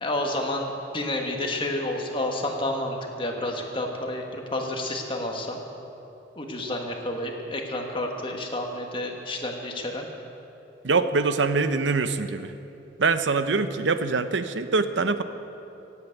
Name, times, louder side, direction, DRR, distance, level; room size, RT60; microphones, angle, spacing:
voice 1, 0.0-5.6 6.4-10.1, left 1 dB, 30° left, 2 dB, 1.7 m, -30 dB
voice 2, 10.8-12.5 13.0-15.2, right 4 dB, 80° right, 11 dB, 0.8 m, -24 dB
17.5 x 8.5 x 8.4 m, 2.9 s
head